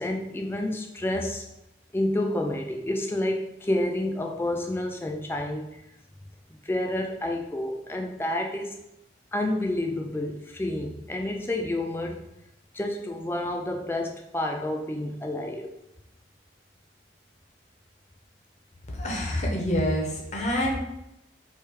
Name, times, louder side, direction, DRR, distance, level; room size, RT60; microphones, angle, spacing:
voice 1, 0.0-1.5 1.9-5.8 6.5-8.8 9.3-12.3 12.7-15.7, left 1 dB, 10° left, 2 dB, 0.3 m, -29 dB
voice 2, 19.0-20.8, equal, 40° left, -1 dB, 0.7 m, -26 dB
3.1 x 2.7 x 3.4 m, 0.86 s
head